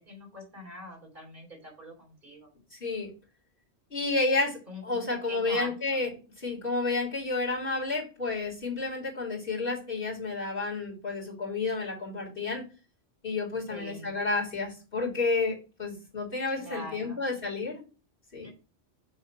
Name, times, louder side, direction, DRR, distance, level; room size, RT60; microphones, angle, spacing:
voice 1, 0.0-2.5 4.7-6.0 13.7-14.3 16.6-17.2 18.4-18.5, equal, 40° right, -1 dB, 3.0 m, -44 dB
voice 2, 2.7-3.1 3.9-6.1 6.4-12.7 13.2-17.8 18.3-18.5, left 3 dB, 45° left, -5 dB, 2.9 m, -31 dB
6.5 x 3.4 x 5.9 m, 0.34 s
omnidirectional pair, 1.2 m